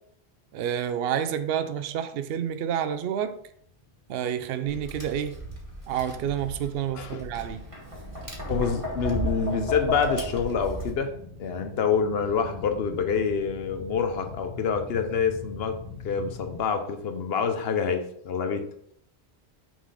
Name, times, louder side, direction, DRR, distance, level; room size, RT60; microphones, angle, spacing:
voice 1, 0.5-3.3 4.1-5.3 5.9-7.6, right 9 dB, 65° right, 0.8 m, -29 dB
sound 1, 3.2-16.6, left 4 dB, 45° left, 1.3 m, -44 dB
Tap, 4.7-10.9, equal, 30° right, 1.5 m, -34 dB
voice 2, 6.9-7.2 8.5-11.1 11.4-15.7 16.0-18.7, left 6 dB, 65° left, 1.0 m, -27 dB
6.2 x 4.0 x 4.9 m
omnidirectional pair, 1.1 m